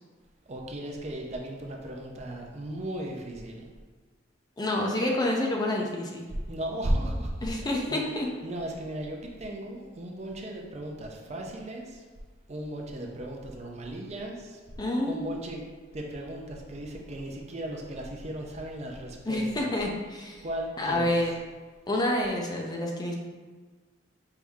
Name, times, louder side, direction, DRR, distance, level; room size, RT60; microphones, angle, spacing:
voice 1, 0.5-3.7 6.5-7.5 7.9-8.0 8.4-12.0 12.5-14.6 15.1-15.6 15.9-19.7 20.4-21.2, right 1 dB, 35° right, 0 dB, 0.5 m, -35 dB
voice 2, 4.6-6.2 7.4-8.3 14.8-15.3 19.3-20.4 20.8-21.3 21.9-23.2, left 1 dB, 20° left, 0 dB, 0.5 m, -28 dB
4.6 x 2.7 x 3.5 m, 1.4 s
head